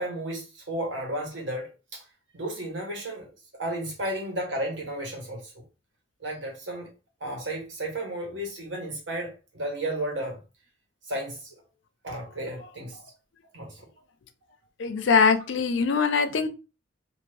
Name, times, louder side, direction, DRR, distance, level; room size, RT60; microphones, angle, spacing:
voice 1, 0.0-2.0 2.3-3.3 3.6-5.5 6.2-6.9 7.2-10.4 11.0-11.6 12.0-13.0 13.5-13.8, right 1 dB, 70° right, 1.3 m, -33 dB
voice 2, 14.8-16.5, left 5 dB, 70° left, 0.4 m, -22 dB
2.6 x 2.6 x 3.2 m
head